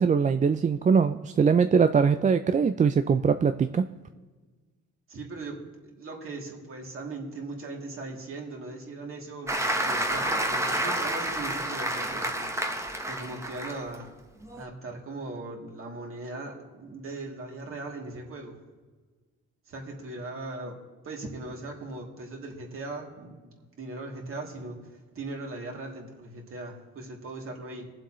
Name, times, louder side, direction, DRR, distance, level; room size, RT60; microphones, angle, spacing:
voice 1, 0.0-3.9, right 6 dB, 25° right, 9 dB, 0.4 m, -22 dB
voice 2, 5.1-12.5 13.1-14.1 14.6-18.6 19.7-20.8 21.0-27.8, right 2 dB, 45° right, -1 dB, 2.7 m, -39 dB
Applause, 9.5-13.9 14.4-14.6, right 1 dB, 10° right, 1.1 m, -29 dB
22.5 x 7.7 x 3.1 m, 1.3 s
cardioid pair, 90°, 30 cm